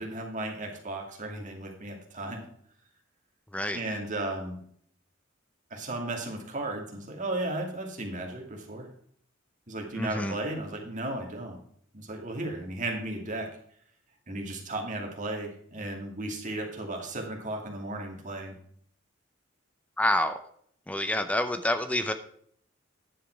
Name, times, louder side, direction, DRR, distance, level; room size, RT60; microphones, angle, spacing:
voice 1, 0.0-2.4 3.7-4.6 5.7-8.9 9.7-11.6 11.9-13.5 14.3-18.5, right 2 dB, 40° right, 1 dB, 2.5 m, -35 dB
voice 2, 9.9-10.3 20.0-20.4 20.9-22.1, left 1 dB, 5° left, 9 dB, 0.6 m, -27 dB
10.5 x 7.4 x 4.6 m, 0.63 s
head